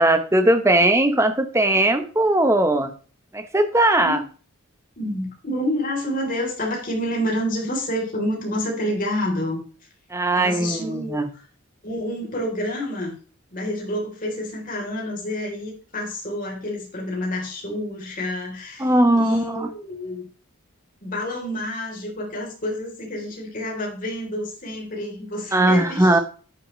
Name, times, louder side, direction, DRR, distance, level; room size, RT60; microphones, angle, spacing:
voice 1, 0.0-2.9 3.3-4.2 10.1-11.3 18.8-19.7 25.5-26.2, right 1 dB, 15° right, 7 dB, 1.1 m, -19 dB
voice 2, 5.0-9.6 10.3-11.4 11.8-13.2 13.5-20.3 21.0-26.2, left 1 dB, 40° left, -1 dB, 3.8 m, -28 dB
9.9 x 9.7 x 3.3 m, 0.40 s
head